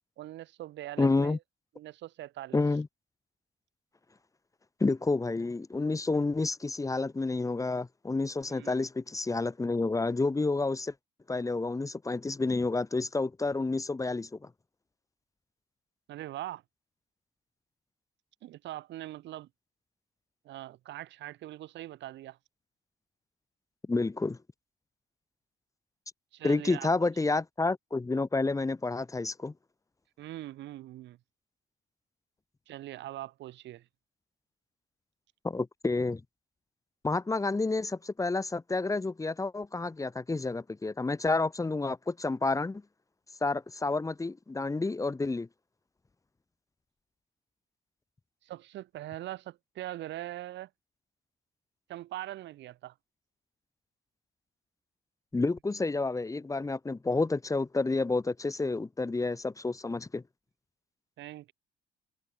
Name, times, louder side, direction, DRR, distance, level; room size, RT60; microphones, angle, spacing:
voice 1, 0.2-1.4 1.7-2.6 8.5-8.9 16.1-16.6 18.4-19.5 20.4-22.4 26.3-27.1 30.2-31.2 32.7-33.9 48.4-50.7 51.9-52.9 61.2-61.5, right 14 dB, 75° right, 6.6 m, -42 dB
voice 2, 1.0-1.4 2.5-2.9 4.8-10.9 11.3-14.5 23.9-24.4 26.4-29.5 35.4-36.2 37.0-42.8 43.4-45.5 55.3-60.2, left 3 dB, 15° left, 3.5 m, -29 dB
cardioid pair, 115°, 19 cm